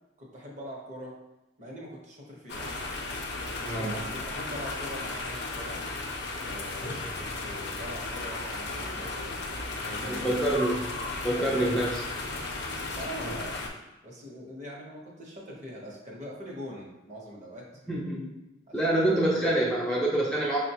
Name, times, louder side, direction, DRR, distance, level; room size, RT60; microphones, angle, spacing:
voice 1, 0.2-1.2 1.6-2.7 3.6-5.8 6.4-10.6 11.3-11.8 12.9-13.6 14.0-17.7 18.7-19.3, equal, 40° right, -2 dB, 0.8 m, -42 dB
sound 1, 2.5-13.7, left 2 dB, 55° left, 0.5 m, -35 dB
voice 2, 10.1-10.8 11.2-12.0 13.2-13.3 17.9-18.3 18.7-20.6, right 1 dB, 5° left, -6 dB, 0.4 m, -26 dB
5.8 x 2.1 x 2.7 m, 0.98 s
head